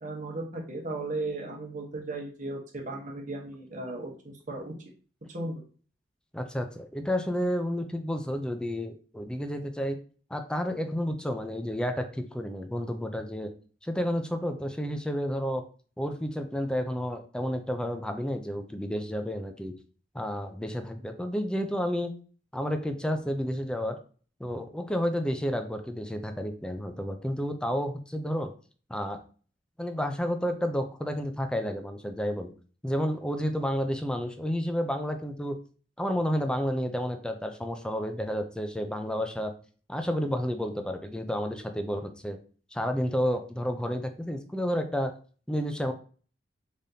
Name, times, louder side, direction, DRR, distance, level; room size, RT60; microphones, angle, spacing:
voice 1, 0.0-4.7 5.3-5.6, right 2 dB, 45° right, 0 dB, 1.0 m, -36 dB
voice 2, 6.3-10.0 10.3-13.5 13.8-15.6 16.0-19.7 20.1-22.1 22.5-24.0 24.4-28.5 28.9-29.2 29.8-32.5 32.8-35.6 36.0-39.5 39.9-42.4 42.7-45.1 45.5-45.9, equal, 5° left, 6 dB, 0.4 m, -31 dB
3.8 x 3.4 x 2.7 m, 0.40 s
head